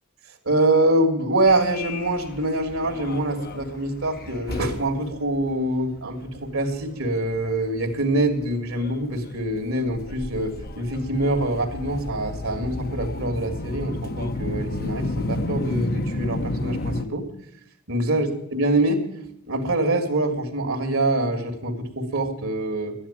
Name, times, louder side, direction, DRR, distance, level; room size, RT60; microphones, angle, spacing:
voice 1, 0.4-17.2 17.9-19.0 19.5-22.9, right 1 dB, 65° right, 5 dB, 2.1 m, -24 dB
Subway metro underground, 1.5-17.0, left 2 dB, 45° left, 0.9 m, -33 dB
12.5 x 10.0 x 8.8 m, 0.76 s
head